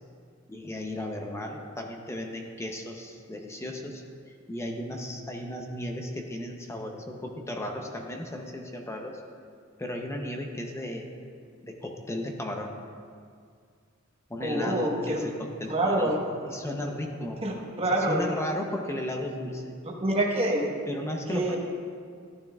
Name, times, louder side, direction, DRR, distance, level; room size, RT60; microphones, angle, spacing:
voice 1, 0.5-9.2 9.8-11.1 11.6-12.7 14.3-16.2 16.5-17.4 17.9-19.8 20.9-21.6, left 1 dB, 15° left, 2 dB, 0.7 m, -35 dB
voice 2, 14.4-15.3 15.7-16.2 17.4-18.3 20.0-20.7 21.3-21.6, right 1 dB, 30° right, -1 dB, 1.2 m, -26 dB
12.0 x 11.5 x 2.4 m, 2.1 s
head